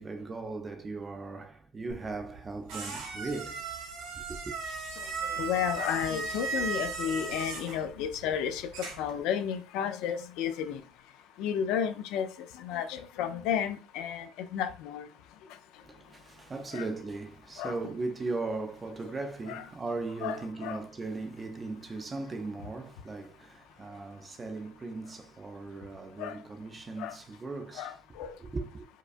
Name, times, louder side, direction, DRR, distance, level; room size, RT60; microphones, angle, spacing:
voice 1, 0.0-3.6 4.1-4.6 15.8-28.0 28.4-28.9, right 3 dB, 20° right, 0.4 m, -38 dB
sound 1, 1.9-9.2, right 4 dB, 75° right, 1.9 m, -37 dB
voice 2, 5.2-10.8 11.4-12.3 12.6-15.1 16.7-16.9 17.6-17.8 19.5-19.6 20.2-20.8 26.2-26.4 27.0-27.2 27.8-28.4, left 9 dB, 65° left, 0.4 m, -32 dB
4.7 x 2.2 x 2.5 m
cardioid pair, 145°, 0 cm